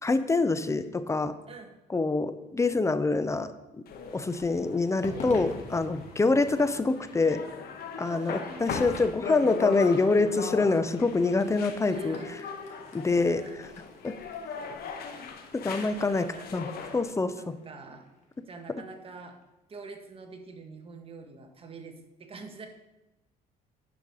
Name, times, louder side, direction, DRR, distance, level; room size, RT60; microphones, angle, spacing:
voice 1, 0.0-1.3 1.9-3.5 4.1-7.4 8.0-12.4 12.9-13.4 14.0-14.1 15.5-16.2 16.5-16.7 16.9-17.3, left 3 dB, 15° left, 12 dB, 0.7 m, -25 dB
sound 1, 3.9-17.1, left 6 dB, 65° left, 1.4 m, -39 dB
Crowd / Fireworks, 5.0-19.4, left 2 dB, 45° left, 2.4 m, -49 dB
voice 2, 8.0-8.8 9.3-9.4 11.9-12.5 13.3-13.6 16.1-18.1 18.5-19.4 19.7-22.7, right 4 dB, 35° right, 4 dB, 1.6 m, -46 dB
10.5 x 5.2 x 6.3 m, 0.98 s
cardioid pair, 110°, 17 cm